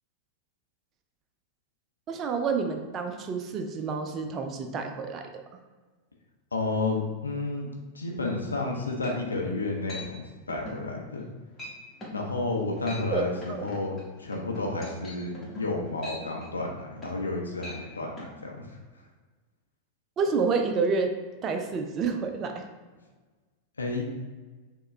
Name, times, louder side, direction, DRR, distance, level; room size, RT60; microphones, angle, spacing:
voice 1, 2.1-5.3 13.1-13.6 20.2-21.1 21.4-22.6, right 5 dB, 30° right, 5 dB, 0.5 m, -29 dB
voice 2, 6.5-7.7 7.9-11.3 12.1-18.7 23.8-24.0, left 2 dB, 75° left, 0 dB, 0.6 m, -31 dB
sound 1, 8.6-8.7 9.0-9.5 9.9-10.1 10.5-10.8 11.2-11.3 11.6-11.8 12.0-12.2 12.7-13.1 13.4-17.3 17.6-17.8 18.2-18.3, left 1 dB, 15° left, 1.2 m, -42 dB
6.3 x 2.3 x 3.1 m, 1.3 s
figure-of-eight pair, 90°, 0 cm